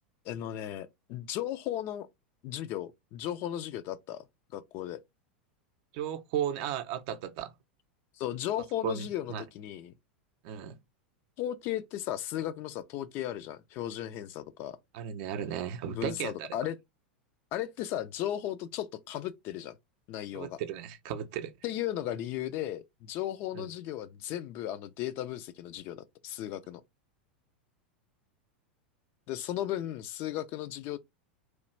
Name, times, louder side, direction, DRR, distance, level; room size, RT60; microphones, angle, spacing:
voice 1, 0.3-2.1 2.4-4.2 4.5-5.0 8.2-9.9 11.4-14.8 15.9-16.8 17.5-19.8 20.1-20.6 21.6-26.8 29.3-31.0, left 12 dB, 45° left, 0.4 m, -35 dB
voice 2, 5.9-7.5 8.8-9.4 10.4-10.7 14.9-16.5 20.3-21.5 23.5-23.7, right 9 dB, 50° right, 0.5 m, -35 dB
3.1 x 2.3 x 3.1 m
figure-of-eight pair, 85°, 5 cm